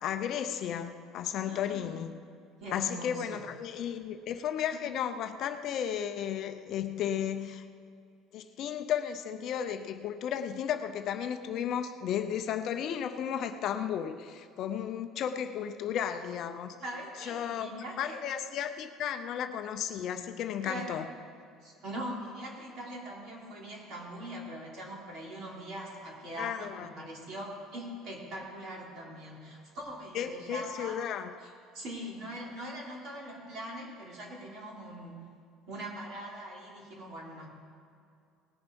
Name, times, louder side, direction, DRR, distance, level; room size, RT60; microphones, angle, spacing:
voice 1, 0.0-2.2 2.7-7.6 8.3-16.8 17.2-17.7 18.0-21.1 26.4-26.9 30.1-31.3, left 9 dB, 45° left, 8 dB, 0.5 m, -34 dB
voice 2, 1.4-1.9 2.6-3.4 16.8-18.2 20.6-21.0 21.6-31.0 31.4-35.2 35.7-37.5, right 1 dB, 45° right, -3 dB, 3.1 m, -42 dB
19.0 x 7.0 x 5.3 m, 2.4 s
cardioid pair, 170°, 0 cm